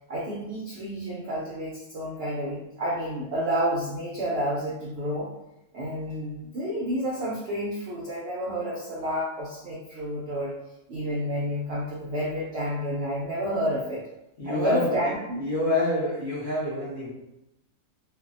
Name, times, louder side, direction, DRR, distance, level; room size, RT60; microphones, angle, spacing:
voice 1, 0.1-5.3 5.7-10.6 10.9-14.0 14.5-15.4, equal, 75° right, -4 dB, 0.5 m, -30 dB
voice 2, 14.4-15.1 15.4-17.1, left 2 dB, 50° left, -9 dB, 0.6 m, -27 dB
2.6 x 2.1 x 2.5 m, 0.88 s
omnidirectional pair, 1.6 m